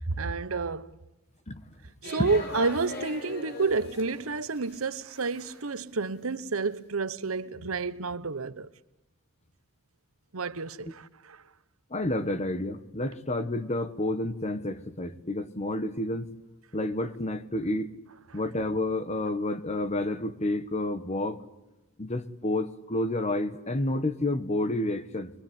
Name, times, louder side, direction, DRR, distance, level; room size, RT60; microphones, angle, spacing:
voice 1, 0.1-1.0 2.0-8.7 10.3-11.4, right 4 dB, 80° right, 1.0 m, -30 dB
sound 1, 2.0-4.9 5.1-5.8, left 2 dB, 50° left, 5.9 m, -41 dB
voice 2, 11.9-16.3 16.7-17.9 18.3-21.4 22.0-25.3, left 1 dB, 30° left, 1.5 m, -30 dB
24.0 x 23.0 x 9.7 m
head